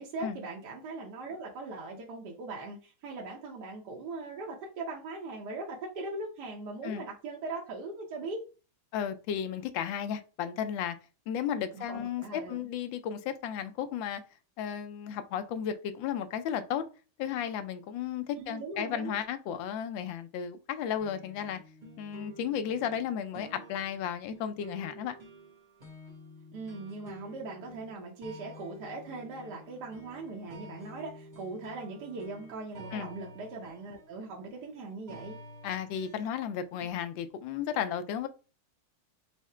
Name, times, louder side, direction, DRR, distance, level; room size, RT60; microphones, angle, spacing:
voice 1, 0.0-8.4 11.7-12.6 18.4-19.1 26.5-35.4, right 3 dB, 65° right, 1.2 m, -40 dB
voice 2, 8.9-11.0 11.3-14.2 14.6-16.8 17.2-21.6 22.0-25.2 32.9-33.1 35.6-38.3, left 8 dB, 75° left, 1.2 m, -34 dB
sound 1, 21.0-36.9, equal, 30° right, 0.8 m, -50 dB
4.8 x 2.1 x 4.2 m
omnidirectional pair, 2.2 m